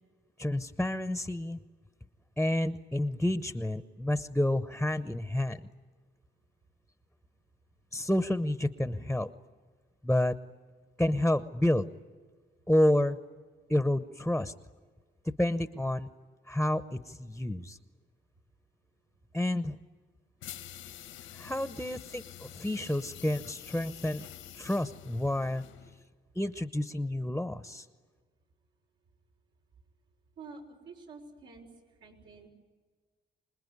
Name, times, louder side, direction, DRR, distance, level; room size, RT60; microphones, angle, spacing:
voice 1, 0.4-1.6 2.4-5.7 7.9-9.3 10.0-10.4 11.0-11.9 12.7-13.2 13.7-14.5 15.2-16.1 16.5-17.8 19.3-19.8 21.3-24.3 24.5-25.6 26.3-27.9, left 1 dB, 5° left, 12 dB, 0.9 m, -29 dB
sound 1, 20.4-26.0, left 11 dB, 85° left, 1.4 m, -47 dB
voice 2, 30.4-31.7 32.0-32.5, right 4 dB, 80° right, 0 dB, 5.6 m, -48 dB
27.0 x 20.5 x 9.5 m, 1.5 s
cardioid pair, 90°, 20 cm